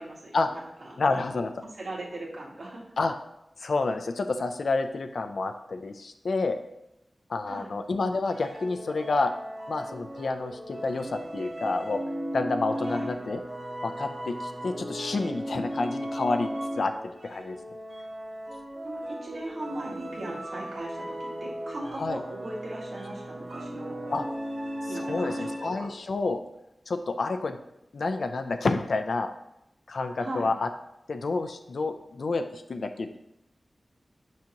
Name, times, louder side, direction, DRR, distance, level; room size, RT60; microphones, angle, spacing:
voice 1, 0.0-1.0 1.7-2.8 7.5-7.7 12.9-13.1 18.8-24.0 24.9-25.9 30.2-30.5, right 1 dB, 80° right, -5 dB, 1.8 m, -39 dB
voice 2, 1.0-1.5 3.0-3.2 3.6-6.6 7.3-9.3 9.7-12.0 12.3-13.4 13.8-16.5 16.8-17.6 22.0-22.2 24.1-24.3 24.9-26.4 26.9-27.6 27.9-29.3 29.9-30.7 31.1-33.2, left 3 dB, 80° left, 7 dB, 0.4 m, -29 dB
sound 1, 8.3-26.0, equal, 55° right, 1.9 m, -36 dB
6.1 x 2.9 x 5.7 m, 0.84 s
wide cardioid pair, 105°, 0 cm